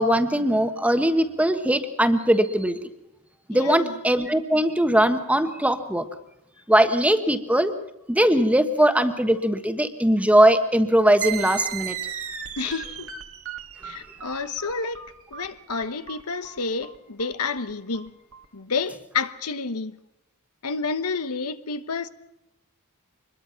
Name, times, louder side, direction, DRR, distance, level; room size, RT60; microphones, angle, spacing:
voice 1, 0.0-2.8 3.5-6.0 6.7-7.7 8.1-11.9, right 1 dB, 5° right, 1.3 m, -20 dB
voice 2, 3.5-3.9 12.6-13.1 13.8-15.0 15.3-18.1 18.5-19.9 20.6-22.1, left 4 dB, 85° left, 1.2 m, -29 dB
sound 1, 11.2-18.5, right 10 dB, 65° right, 1.8 m, -36 dB
24.5 x 21.5 x 5.8 m
head